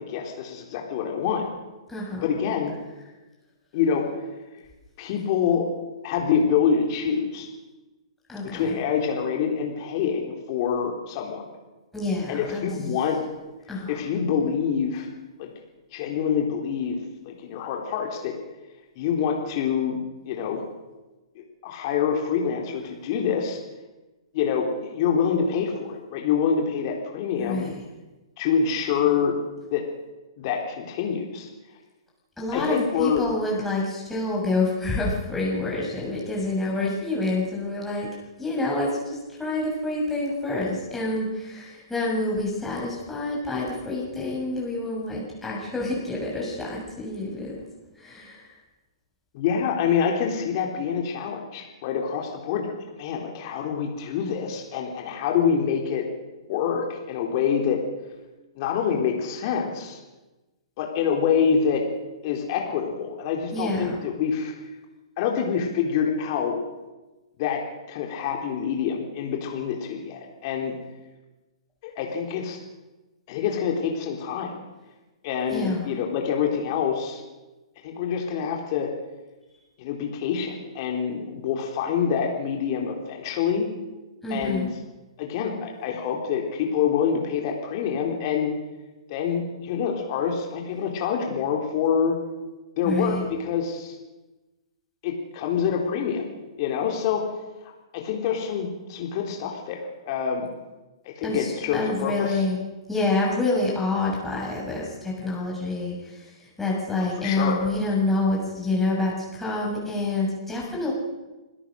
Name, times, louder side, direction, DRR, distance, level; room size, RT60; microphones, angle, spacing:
voice 1, 0.0-1.5 2.1-2.7 3.7-4.1 5.0-5.7 6.0-7.5 8.4-11.5 12.3-13.2 13.9-15.1 15.4-15.5 15.9-17.0 17.3-18.3 19.0-20.0 20.2-20.6 21.4-23.6 24.3-27.7 28.4-29.3 29.7-29.8 30.4-31.5 32.5-33.2 49.3-56.1 56.5-57.8 58.6-60.0 60.8-61.8 62.2-64.5 65.2-66.6 67.4-67.6 67.9-70.7 71.8-72.6 73.3-74.6 75.2-77.2 77.8-78.9 79.8-83.7 84.3-84.7 85.2-88.5 89.1-92.2 92.8-94.0 95.0-96.2 96.6-97.2 97.6-99.8 100.1-100.5 101.2-102.4 107.2-107.6, left 7 dB, 45° left, 1 dB, 4.0 m, -26 dB
voice 2, 1.9-2.2 8.3-8.8 11.9-12.6 13.7-14.0 27.4-27.8 32.4-38.1 38.4-47.6 48.0-48.5 63.5-63.9 75.5-75.9 84.2-84.7 92.8-93.2 101.2-102.6 102.9-110.9, left 2 dB, 5° left, -4 dB, 7.0 m, -27 dB
26.5 x 17.0 x 6.5 m, 1.1 s
hypercardioid pair, 135°, 3 cm